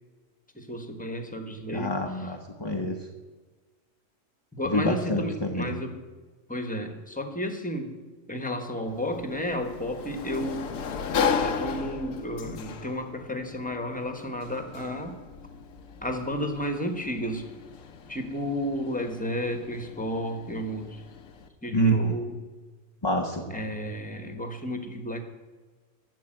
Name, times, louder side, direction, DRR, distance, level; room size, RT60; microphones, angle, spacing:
voice 1, 0.5-2.3 4.5-6.0 6.5-8.0 8.3-10.7 11.3-15.2 16.0-17.5 18.1-21.0 21.6-22.4 23.5-25.2, equal, 5° left, 6 dB, 1.2 m, -32 dB
voice 2, 1.7-3.0 4.6-5.7 21.7-22.0 23.0-23.5, equal, 25° left, 2 dB, 0.8 m, -27 dB
Sliding door, 8.8-21.5, left 6 dB, 85° left, 1.3 m, -35 dB
10.5 x 7.2 x 9.0 m, 1.3 s
omnidirectional pair, 1.3 m